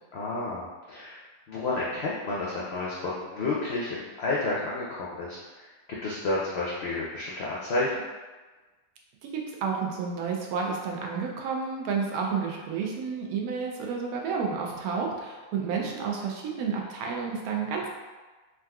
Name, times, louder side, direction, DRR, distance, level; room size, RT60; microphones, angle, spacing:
voice 1, 0.1-1.2 1.5-8.0, left 2 dB, 65° left, -5 dB, 0.6 m, -31 dB
voice 2, 9.2-17.9, right 5 dB, 85° right, 0 dB, 1.1 m, -31 dB
3.6 x 2.6 x 2.3 m, 1.3 s
omnidirectional pair, 1.5 m